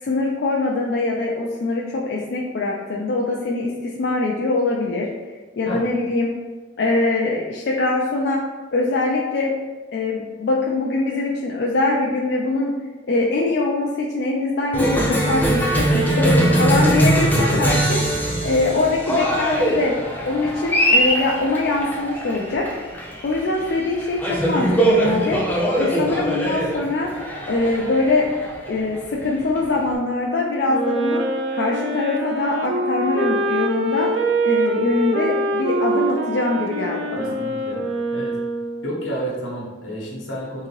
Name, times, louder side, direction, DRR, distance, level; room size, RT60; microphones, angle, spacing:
voice 1, 0.0-5.1 5.6-6.3 6.8-8.4 8.7-9.5 9.9-12.7 13.1-18.0 18.4-19.9 20.2-22.6 23.2-25.4 25.8-27.1 27.5-28.3 28.7-31.2 31.5-34.1 34.4-37.3, left 2 dB, 60° left, -2 dB, 0.4 m, -23 dB
Cheering, 14.7-29.9, right 1 dB, 10° left, 0.6 m, -22 dB
Wind instrument woodwind instrument, 30.6-39.0, right 1 dB, 90° right, 0.4 m, -24 dB
voice 2, 37.2-37.8 38.1-38.4 38.8-40.7, right 1 dB, 85° left, -4 dB, 1.1 m, -30 dB
3.7 x 2.7 x 3.0 m, 1.3 s
head